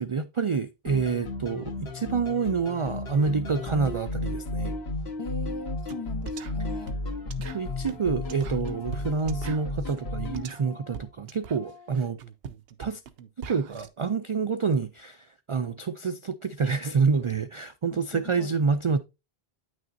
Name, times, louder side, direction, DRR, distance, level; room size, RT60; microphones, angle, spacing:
voice 1, 0.0-4.7 7.5-12.2 12.8-13.0 13.4-19.0, right 5 dB, 50° right, 0.4 m, -27 dB
sound 1, 0.9-10.5, left 2 dB, 85° left, 1.6 m, -34 dB
Organ, 1.5-1.6 1.9-2.2 2.5-6.1 6.4-12.0, left 5 dB, 35° right, 1.3 m, -51 dB
voice 2, 5.2-7.0 17.9-18.5, left 4 dB, 40° left, 0.4 m, -40 dB
sound 2, 5.9-6.0 6.3-13.9, right 7 dB, 75° right, 0.9 m, -43 dB
9.2 x 6.3 x 2.6 m
omnidirectional pair, 1.0 m